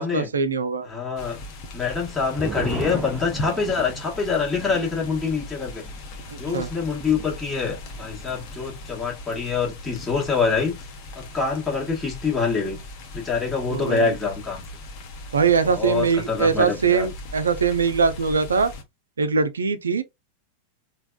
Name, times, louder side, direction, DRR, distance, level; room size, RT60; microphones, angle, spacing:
voice 1, 0.0-0.9 6.5-6.7 13.7-14.1 15.3-18.7 19.2-20.0, right 5 dB, 70° right, 0.4 m, -22 dB
voice 2, 0.8-1.4 1.7-5.8 6.4-10.8 11.2-12.8 13.1-14.6 15.6-17.1, left 5 dB, 10° left, 1.3 m, -25 dB
sound 1, 1.2-18.8, left 2 dB, 40° left, 0.9 m, -39 dB
sound 2, 1.8-8.7 9.0-9.1 9.5-10.0, right 3 dB, 20° right, 0.5 m, -37 dB
3.4 x 2.3 x 2.2 m
figure-of-eight pair, 90°, 0 cm